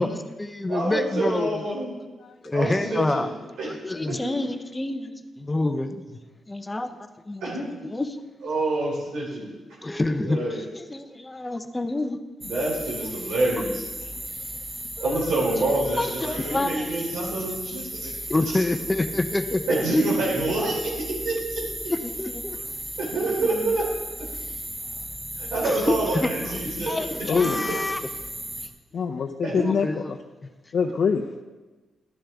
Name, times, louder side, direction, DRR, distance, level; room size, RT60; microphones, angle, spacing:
voice 1, 0.0-1.6 2.4-3.3 3.7-6.2 6.5-6.9 7.3-7.5 7.8-8.2 9.8-12.2 15.0-16.9 17.4-17.5 18.3-20.0 21.9-22.8 23.2-23.8 25.6-28.0 29.6-30.1, left 2 dB, 15° left, 9 dB, 0.6 m, -28 dB
voice 2, 0.7-1.9 2.5-3.3 3.6-3.7 4.1-4.2 7.4-7.7 8.4-9.5 10.2-10.6 12.4-13.8 15.0-18.1 19.7-21.6 23.0-23.9 25.4-27.1 29.4-29.7, right 2 dB, 85° right, -4 dB, 3.2 m, -26 dB
sound 1, 12.4-28.7, right 1 dB, 15° right, 1.1 m, -35 dB
voice 3, 28.9-30.2 30.7-31.2, left 6 dB, 55° left, 2 dB, 0.6 m, -24 dB
13.0 x 10.0 x 3.5 m, 1.2 s
cardioid pair, 125°, 0 cm